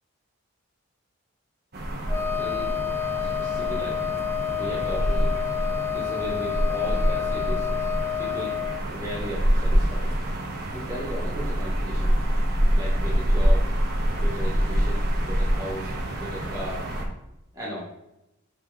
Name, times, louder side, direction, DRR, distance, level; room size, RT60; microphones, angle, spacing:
sound 1, 1.7-17.0, equal, 45° right, 1.1 m, -26 dB
Wind instrument woodwind instrument, 2.1-8.8, left 10 dB, 15° left, 0.4 m, -29 dB
voice 1, 2.3-2.8 3.1-4.0 4.5-5.4 5.9-7.7 8.2-8.6 8.9-10.1 10.5-12.1 12.7-13.6 14.2-16.9 17.5-17.8, equal, 15° right, -7 dB, 1.5 m, -36 dB
6.7 x 4.2 x 3.5 m, 0.87 s
head